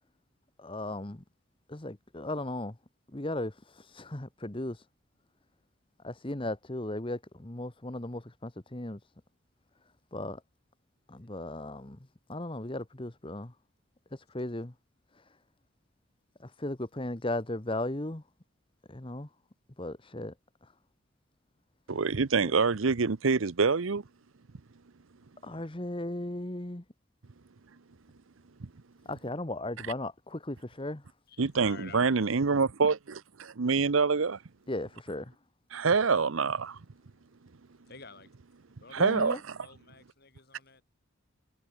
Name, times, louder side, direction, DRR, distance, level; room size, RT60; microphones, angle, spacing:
voice 1, 0.6-1.2 1.7-2.8 3.1-4.9 6.0-9.1 10.1-10.4 11.1-12.0 12.3-13.5 14.1-14.7 15.1-15.4 16.4-18.2 18.9-19.3 19.8-20.3 20.6-20.7 25.4-26.8 29.0-31.1 34.7-35.3 39.0-39.4, left 1 dB, 25° left, 1.3 m, -36 dB
voice 2, 21.9-24.0 28.6-28.7 31.4-34.4 35.7-36.8 38.9-39.4, right 4 dB, 75° right, 0.7 m, -26 dB
voice 3, 31.3-32.3 37.9-38.3 38.8-40.8, left 4 dB, 50° left, 6.5 m, -50 dB
head